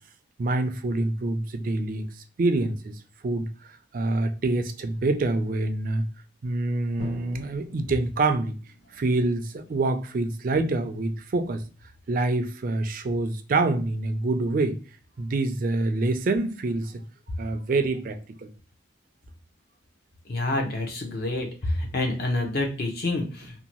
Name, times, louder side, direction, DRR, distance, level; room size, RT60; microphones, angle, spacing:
voice 1, 0.4-2.1 2.4-3.5 3.9-6.1 6.4-8.6 8.9-11.6 12.1-14.8 15.2-17.0 17.4-18.5, right 2 dB, 45° right, 0.3 m, -26 dB
Drum, 7.0-10.8, left 1 dB, 35° left, 1.2 m, -45 dB
voice 2, 20.3-23.5, left 2 dB, 50° left, 0.7 m, -28 dB
2.7 x 2.2 x 2.9 m
head